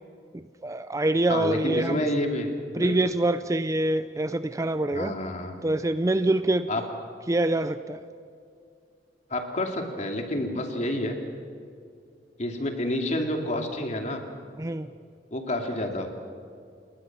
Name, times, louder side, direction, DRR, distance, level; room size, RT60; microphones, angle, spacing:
voice 1, 0.3-2.0 2.7-5.1 5.6-6.7 7.3-8.0 14.6-14.9, right 2 dB, 20° right, 12 dB, 0.5 m, -25 dB
voice 2, 1.3-3.0 4.9-5.6 6.7-6.8 9.3-11.2 12.4-14.2 15.3-16.1, left 1 dB, 40° left, 3 dB, 2.6 m, -29 dB
29.5 x 20.5 x 6.1 m, 2.3 s
head